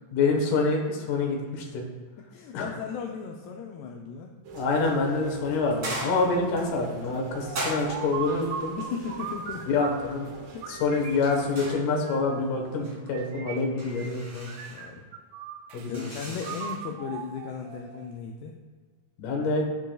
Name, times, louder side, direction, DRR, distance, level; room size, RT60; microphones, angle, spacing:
voice 1, 0.1-1.8 2.5-2.7 4.5-8.7 9.7-10.3 10.7-14.5 15.7-16.0 16.3-16.4 19.2-19.7, left 3 dB, 70° left, 1 dB, 2.1 m, -26 dB
voice 2, 2.3-4.4 8.8-9.7 10.5-10.7 12.3-12.4 14.2-14.4 14.7-15.0 15.9-18.5, left 6 dB, 85° left, 1 dB, 2.3 m, -36 dB
Rain, 4.4-11.7, right 4 dB, 70° right, 1.9 m, -44 dB
sound 1, 5.8-6.6 7.5-8.3 11.6-12.3 12.6-13.0 13.8-14.9 15.9-16.8, right 1 dB, 45° right, 2.2 m, -37 dB
sound 2, 7.4-10.2 10.6-12.4 13.1-14.2 14.5-15.9 16.4-18.2, right 7 dB, 90° right, 2.9 m, -39 dB
9.1 x 8.2 x 2.3 m, 1.5 s
omnidirectional pair, 5.2 m